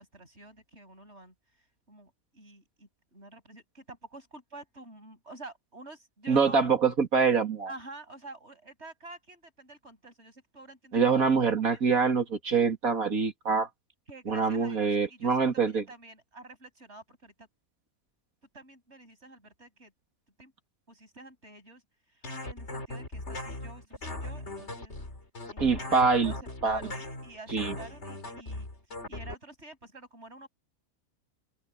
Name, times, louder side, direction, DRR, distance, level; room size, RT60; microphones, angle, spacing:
voice 1, 0.0-1.3 1.9-6.6 7.7-11.4 11.7-12.0 14.1-17.5 18.5-19.9 20.4-20.5 20.9-21.8 22.1-25.0 25.5-26.4 26.6-27.0 27.2-28.7 29.1-30.5, right 2 dB, 50° right, 8.5 m, -48 dB
voice 2, 6.3-7.7 10.9-13.7 14.3-15.8 25.6-26.3 26.6-26.8 27.5-27.8, right 5 dB, 80° right, 2.9 m, -25 dB
sound 1, 22.2-29.3, left 2 dB, 50° left, 4.1 m, -39 dB
open air
omnidirectional pair, 1.5 m